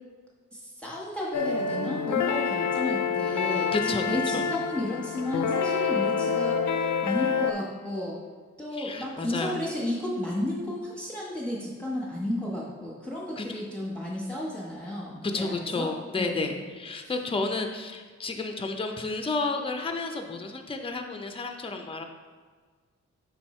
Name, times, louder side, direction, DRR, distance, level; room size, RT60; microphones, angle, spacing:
voice 1, 0.5-8.2 8.6-16.6 17.0-17.1, left 1 dB, 5° left, -5 dB, 1.2 m, -33 dB
sound 1, 1.3-7.5, left 6 dB, 80° left, 0.5 m, -27 dB
voice 2, 3.7-4.0 4.3-4.4 8.8-9.6 13.4-13.6 15.2-22.0, left 3 dB, 20° left, 5 dB, 0.5 m, -31 dB
5.5 x 4.4 x 4.3 m, 1.5 s
wide cardioid pair, 120°, 29 cm